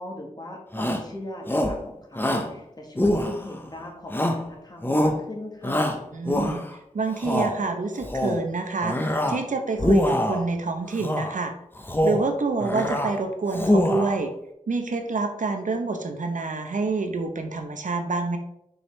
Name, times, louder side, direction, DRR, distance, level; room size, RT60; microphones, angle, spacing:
voice 1, 0.0-5.9, left 1 dB, 30° left, 1 dB, 1.3 m, -39 dB
Shout, 0.7-1.1 1.5-1.8 2.2-2.5 3.0-3.6 4.1-4.5 4.8-5.2 5.6-6.7 7.1-7.5 8.0-8.4 8.8-9.4 9.7-10.5 11.0-11.3 11.8-12.3 12.6-13.1 13.5-14.2, left 1 dB, 15° left, 0.7 m, -24 dB
voice 2, 6.1-6.6 6.9-11.5 12.0-14.3 14.7-18.4, right 3 dB, 80° right, 5 dB, 0.7 m, -27 dB
6.1 x 4.8 x 3.2 m, 0.80 s
wide cardioid pair, 85°, 13 cm